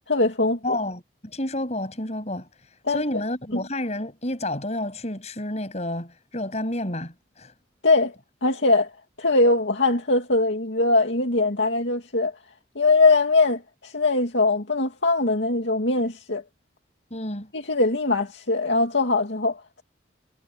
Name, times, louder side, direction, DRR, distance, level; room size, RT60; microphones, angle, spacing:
voice 1, 0.1-0.8 2.8-3.0 3.5-3.6 7.8-8.2 8.4-8.9 9.2-12.3 12.8-16.4 17.5-19.8, left 3 dB, 85° left, 2.4 m, -21 dB
voice 2, 0.6-2.5 2.9-7.5 17.1-17.5, left 1 dB, 40° left, 7.6 m, -30 dB
head